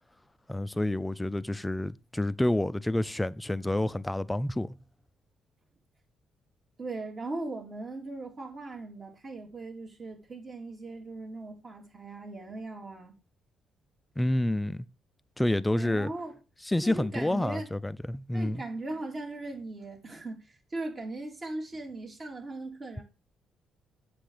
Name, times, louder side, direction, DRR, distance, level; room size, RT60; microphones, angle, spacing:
voice 1, 0.5-4.8 14.2-14.9 15.4-16.1 16.7-18.6, left 1 dB, 10° left, 0.5 m, -28 dB
voice 2, 6.8-13.1 15.7-16.3 16.8-17.7 18.3-23.0, right 2 dB, 35° right, 3.4 m, -39 dB
7.7 x 6.1 x 5.0 m
cardioid pair, 90°, 0 cm